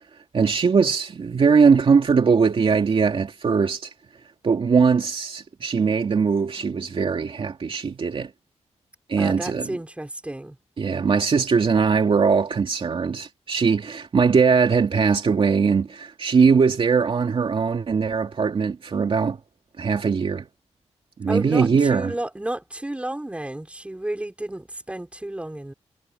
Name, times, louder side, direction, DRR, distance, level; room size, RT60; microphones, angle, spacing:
voice 1, 0.3-3.9 4.4-8.3 9.1-9.8 10.8-19.4 19.8-20.5 21.2-22.1, right 5 dB, 50° right, 2.6 m, -20 dB
voice 2, 9.2-10.6 21.3-25.7, right 1 dB, 10° right, 5.8 m, -31 dB
wide cardioid pair, 130°, 12 cm